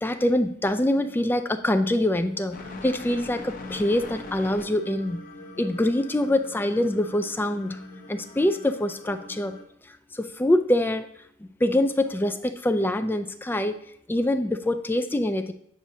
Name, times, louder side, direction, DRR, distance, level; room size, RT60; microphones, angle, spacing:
voice 1, 0.0-2.6 2.8-5.2 5.6-7.8 8.1-9.5 9.9-11.1 11.6-13.8 14.1-15.5, left 1 dB, 10° left, 9 dB, 0.3 m, -24 dB
sound 1, 2.5-9.6, left 2 dB, 40° left, 0.8 m, -42 dB
8.7 x 6.1 x 2.7 m, 0.71 s
head